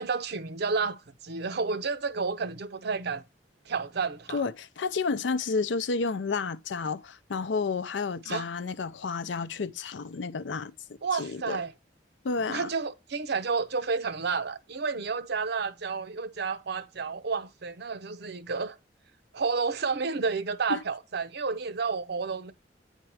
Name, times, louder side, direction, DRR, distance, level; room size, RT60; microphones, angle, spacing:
voice 1, 0.0-3.2 3.7-4.4 8.3-8.5 11.0-11.7 12.5-18.8 19.3-22.5, right 4 dB, 65° right, 0.7 m, -31 dB
voice 2, 4.3-10.7 11.1-11.6 12.2-12.7 20.7-20.8, left 4 dB, 85° left, 0.5 m, -31 dB
8.8 x 4.5 x 4.6 m
head